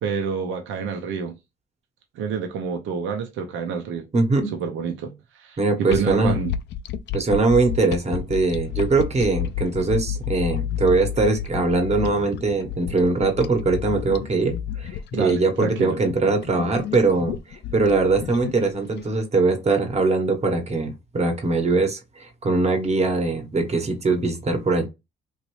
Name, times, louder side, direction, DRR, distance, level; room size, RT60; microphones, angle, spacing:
voice 1, 0.0-1.3 2.2-4.1 4.5-6.5 15.1-16.0, right 6 dB, 85° right, 0.7 m, -28 dB
voice 2, 4.1-4.5 5.6-6.4 7.1-24.9, right 3 dB, 35° right, 1.1 m, -22 dB
sound 1, 5.9-19.0, left 9 dB, 65° left, 0.4 m, -31 dB
3.0 x 2.6 x 3.1 m
cardioid pair, 90°, 20 cm